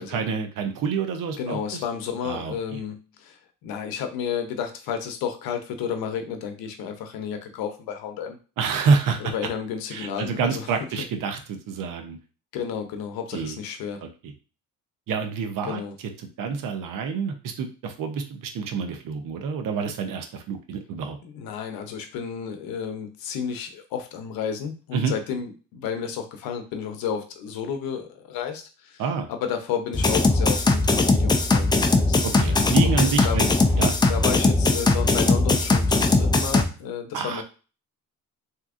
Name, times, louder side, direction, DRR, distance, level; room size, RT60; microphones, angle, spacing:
voice 1, 0.0-1.8 2.2-2.8 8.6-9.3 9.9-12.2 13.3-13.6 14.0-14.3 15.1-21.2 24.9-25.1 29.0-29.3 32.2-33.5 33.8-33.9 37.1-37.4, right 5 dB, 70° right, 6 dB, 0.7 m, -28 dB
voice 2, 1.4-8.4 9.2-10.7 12.5-14.0 15.7-15.9 21.2-29.0 29.3-33.4 34.1-37.4, left 7 dB, 90° left, 6 dB, 0.7 m, -32 dB
sound 1, 29.9-36.6, left 3 dB, 15° left, 0.3 m, -20 dB
3.5 x 2.8 x 2.5 m, 0.34 s
cardioid pair, 105°, 35 cm